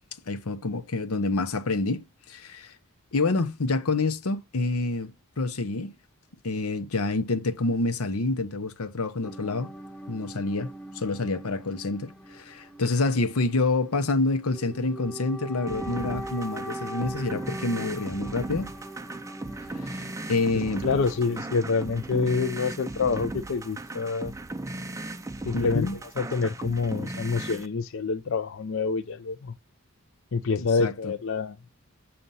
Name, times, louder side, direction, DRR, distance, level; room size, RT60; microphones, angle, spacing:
voice 1, 0.3-2.7 3.1-5.1 5.4-5.9 6.4-9.7 10.1-10.7 10.9-18.7 19.9-20.8 25.5-26.0 30.6-31.1, left 3 dB, 85° left, 0.9 m, -27 dB
sound 1, 9.2-26.4, right 1 dB, 5° left, 0.8 m, -43 dB
sound 2, 15.7-27.7, right 2 dB, 15° right, 0.4 m, -37 dB
voice 2, 20.8-24.3 25.4-25.9 26.2-29.5 30.3-31.7, left 4 dB, 60° left, 0.5 m, -27 dB
7.7 x 2.9 x 5.5 m
head